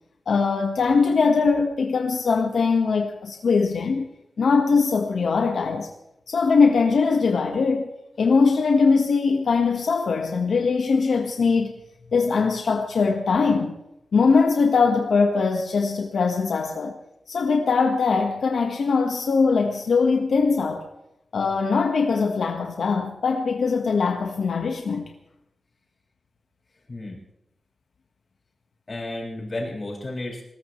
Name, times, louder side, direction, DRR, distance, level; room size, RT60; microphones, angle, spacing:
voice 1, 0.3-4.0 4.4-5.9 6.3-7.9 8.2-11.7 12.1-13.8 14.1-17.0 17.3-20.9 21.3-25.1, left 4 dB, 80° left, 1.5 m, -21 dB
voice 2, 28.9-30.4, left 2 dB, 35° left, 6.4 m, -32 dB
21.0 x 19.0 x 3.2 m
wide cardioid pair, 115°, 0 cm